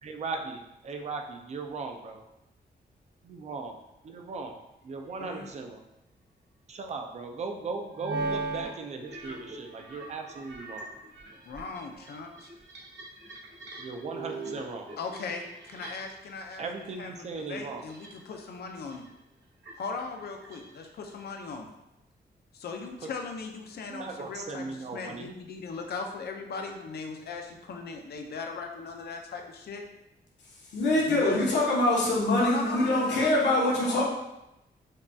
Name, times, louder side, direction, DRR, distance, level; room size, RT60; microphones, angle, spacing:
voice 1, 0.0-2.2 3.2-3.8 4.0-4.5 4.8-5.8 6.7-10.9 13.8-14.9 16.6-17.8 23.0-23.1 23.9-25.3 30.9-31.2, right 4 dB, 40° right, 4 dB, 0.4 m, -38 dB
sound 1, 5.1-5.2 7.9-8.7 9.0-16.2 16.5-17.1 17.4-18.4 18.8-19.1 19.6-21.3, right 3 dB, 85° right, 0.9 m, -39 dB
voice 2, 5.2-5.5 11.4-12.5 14.4-14.6 15.0-16.6 17.0-19.0 19.8-21.7 22.5-29.8 31.1-31.6 32.3-34.0, left 4 dB, 65° left, 3 dB, 0.5 m, -38 dB
voice 3, 30.7-34.0, left 1 dB, 85° left, -4 dB, 1.0 m, -24 dB
5.2 x 2.3 x 2.6 m, 0.90 s
wide cardioid pair, 170°, 18 cm